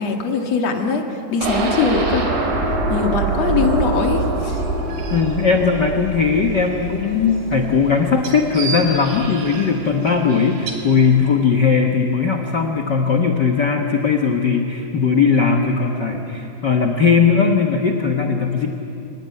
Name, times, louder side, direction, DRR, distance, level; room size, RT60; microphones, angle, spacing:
voice 1, 0.0-2.3 2.9-4.6, left 5 dB, 50° left, 3 dB, 2.8 m, -21 dB
sound 1, 1.4-9.3 9.6-9.7 10.1-10.2, right 3 dB, 85° right, 5.1 m, -24 dB
sound 2, 3.2-11.3, right 4 dB, 70° right, 4.0 m, -35 dB
voice 2, 5.1-18.7, left 5 dB, 85° left, 3 dB, 0.9 m, -18 dB
25.0 x 19.0 x 9.6 m, 2.8 s
omnidirectional pair, 4.1 m